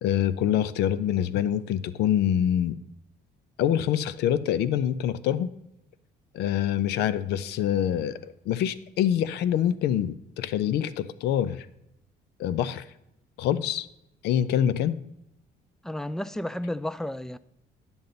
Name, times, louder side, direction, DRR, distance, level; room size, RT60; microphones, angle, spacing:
voice 1, 0.0-2.8 3.6-5.5 6.3-11.7 12.4-12.8 13.4-13.9 14.2-15.0, left 10 dB, 80° left, 0.6 m, -25 dB
voice 2, 15.8-17.4, left 1 dB, 5° left, 0.3 m, -32 dB
10.5 x 7.1 x 3.9 m
cardioid pair, 110°, 17 cm